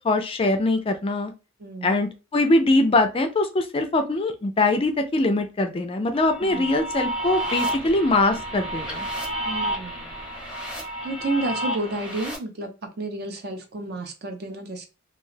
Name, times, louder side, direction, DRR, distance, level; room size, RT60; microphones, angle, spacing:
voice 1, 0.0-1.3 1.8-9.1, left 2 dB, 25° left, 6 dB, 0.4 m, -22 dB
voice 2, 1.6-2.0 6.4-6.7 9.4-10.1 10.8-12.7 13.0-14.8, right 2 dB, 50° right, 6 dB, 0.6 m, -31 dB
sound 1, 6.1-12.4, right 1 dB, 5° right, 0.8 m, -31 dB
2.4 x 2.3 x 3.2 m, 0.29 s
head